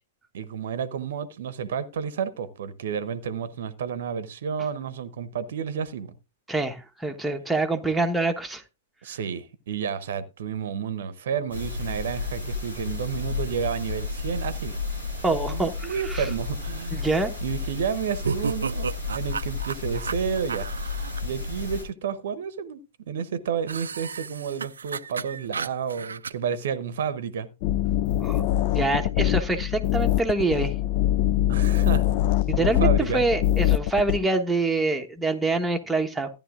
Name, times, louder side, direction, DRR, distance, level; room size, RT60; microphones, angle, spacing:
voice 1, 0.3-6.1 9.0-14.7 15.3-17.1 17.4-18.9 19.1-20.7 21.2-22.8 23.1-27.5 31.5-32.0 32.6-33.2, right 7 dB, 60° right, 0.8 m, -31 dB
voice 2, 6.5-8.6 15.2-16.2 16.9-17.3 28.2-28.4 28.7-30.7 32.5-36.3, right 2 dB, 5° right, 1.2 m, -25 dB
sound 1, 11.5-21.8, left 4 dB, 80° left, 6.1 m, -32 dB
sound 2, 18.2-21.2 23.7-26.3, right 5 dB, 75° right, 0.4 m, -33 dB
sound 3, 27.6-34.2, left 13 dB, 45° left, 0.4 m, -23 dB
14.0 x 10.5 x 2.5 m
figure-of-eight pair, 105°, 0 cm